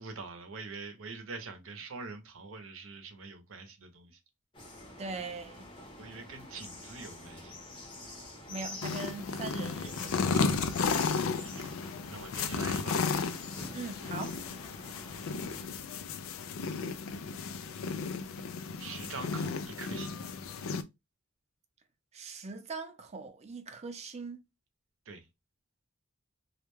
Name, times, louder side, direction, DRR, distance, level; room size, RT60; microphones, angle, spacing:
voice 1, 0.0-4.2 6.0-7.6 11.3-11.7 12.1-13.0 18.8-20.3 25.1-25.3, right 4 dB, 75° right, 0.7 m, -44 dB
sound 1, 4.5-15.6, left 2 dB, 25° left, 0.7 m, -47 dB
voice 2, 5.0-5.7 8.5-10.6 13.7-14.4 22.1-24.4, right 4 dB, 30° right, 0.4 m, -41 dB
sound 2, 8.8-20.8, left 5 dB, 80° left, 0.4 m, -34 dB
2.3 x 2.1 x 3.1 m
head